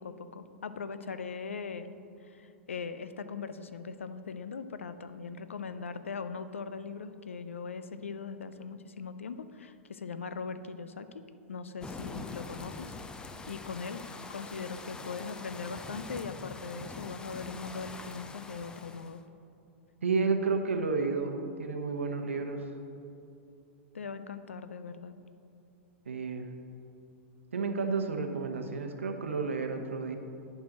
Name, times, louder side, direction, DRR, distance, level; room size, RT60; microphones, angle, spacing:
voice 1, 0.0-1.9 2.2-12.9 13.5-19.2 23.9-25.1, left 5 dB, 75° left, 12 dB, 0.5 m, -40 dB
sound 1, 11.8-19.2, left 3 dB, 10° left, 0.5 m, -44 dB
voice 2, 20.0-22.7 26.1-26.5 27.5-30.2, right 4 dB, 75° right, 4 dB, 0.9 m, -31 dB
10.0 x 4.6 x 6.5 m, 2.7 s
figure-of-eight pair, 100°, 7 cm